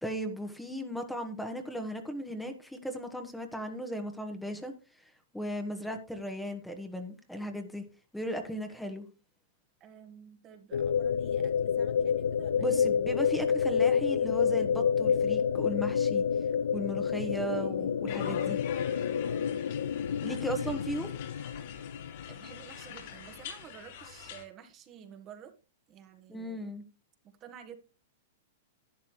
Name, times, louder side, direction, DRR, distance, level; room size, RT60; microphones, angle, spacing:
voice 1, 0.0-4.7 5.3-7.8 8.1-9.1 12.6-16.2 16.7-18.6 20.2-21.1 26.3-26.8, equal, 5° left, 5 dB, 1.4 m, -36 dB
voice 2, 9.8-12.7 17.5-17.8 19.2-19.6 20.5-20.9 22.3-25.5 25.9-26.7 27.4-27.8, right 8 dB, 30° right, 7 dB, 1.6 m, -51 dB
sound 1, 10.7-22.9, left 7 dB, 85° left, 0.4 m, -29 dB
sound 2, 18.1-24.4, left 8 dB, 60° left, 3.6 m, -46 dB
11.5 x 9.8 x 3.2 m, 0.32 s
hypercardioid pair, 130°, 0 cm